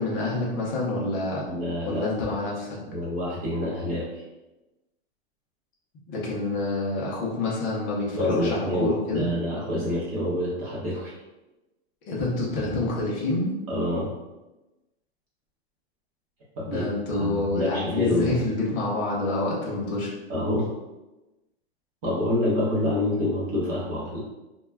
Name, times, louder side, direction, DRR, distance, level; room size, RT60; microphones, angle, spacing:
voice 1, 0.0-1.5 1.8-2.8 6.1-9.3 12.1-13.5 16.7-20.1, left 2 dB, 20° left, -4 dB, 0.4 m, -27 dB
voice 2, 1.5-2.0 2.9-4.2 8.1-11.1 13.7-14.1 16.6-18.4 20.3-20.7 22.0-24.2, left 1 dB, 35° right, -6 dB, 0.7 m, -27 dB
2.2 x 2.1 x 3.2 m, 1.0 s
hypercardioid pair, 155°, 32 cm